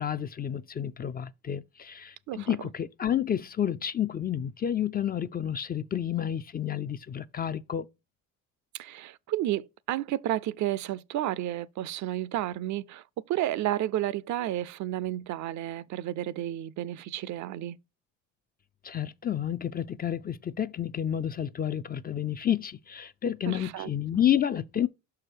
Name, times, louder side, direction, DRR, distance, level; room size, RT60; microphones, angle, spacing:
voice 1, 0.0-7.9 18.8-24.9, left 10 dB, 25° left, 0.4 m, -30 dB
voice 2, 8.7-17.8 23.5-23.9, right 13 dB, 55° right, 0.5 m, -31 dB
5.9 x 4.8 x 4.5 m
supercardioid pair, 80°, 34 cm